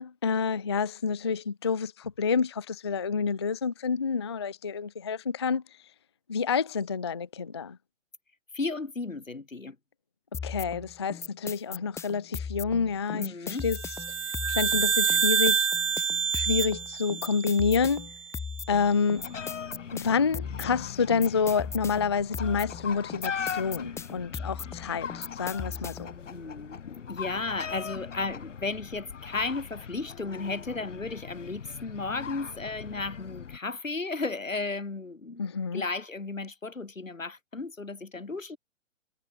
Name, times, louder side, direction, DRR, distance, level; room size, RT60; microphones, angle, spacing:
voice 1, 0.0-5.6 6.3-7.8 10.4-13.8 14.5-15.7 16.3-18.1 18.7-19.3 19.9-26.1 35.4-35.8, left 5 dB, 25° left, 0.3 m, -28 dB
voice 2, 8.5-9.8 13.1-13.7 26.3-26.8 27.1-35.4 35.7-38.6, left 3 dB, 85° left, 6.5 m, -34 dB
sound 1, 10.3-26.2, left 6 dB, 5° left, 1.2 m, -38 dB
sound 2, 13.7-18.2, right 6 dB, 70° right, 2.5 m, -27 dB
sound 3, 19.2-33.6, left 7 dB, 70° left, 1.8 m, -40 dB
figure-of-eight pair, 130°, 38 cm